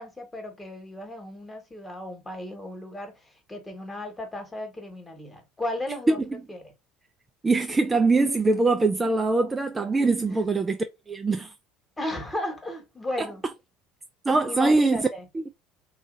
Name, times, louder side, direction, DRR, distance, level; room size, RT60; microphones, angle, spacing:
voice 1, 0.0-3.1 3.5-6.2 6.5-6.6 10.2-10.5 12.0-13.4 14.4-15.2, left 1 dB, 15° left, 1.3 m, -35 dB
voice 2, 6.1-6.4 7.4-10.8 11.1-11.5 13.2-13.3 14.3-15.1 15.3-15.5, right 3 dB, 20° right, 0.4 m, -23 dB
2.9 x 2.4 x 2.5 m
hypercardioid pair, 70°, 0 cm